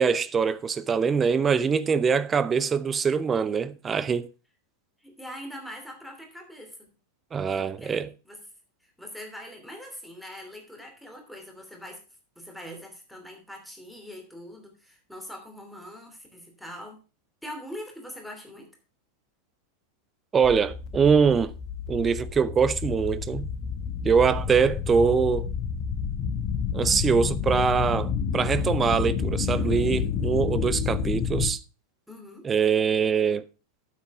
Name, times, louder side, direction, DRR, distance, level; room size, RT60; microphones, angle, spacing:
voice 1, 0.0-4.3 7.3-8.1 20.3-21.5 21.9-23.5 24.0-25.5 26.7-31.6 32.4-33.4, right 6 dB, 20° right, 0.6 m, -23 dB
voice 2, 5.0-6.9 7.6-8.4 8.8-12.0 12.4-17.0 17.4-18.7 32.1-32.5, equal, ahead, 2.9 m, -42 dB
sound 1, 20.4-31.5, left 7 dB, 35° left, 1.2 m, -29 dB
9.2 x 7.7 x 4.7 m
figure-of-eight pair, 90°, 0 cm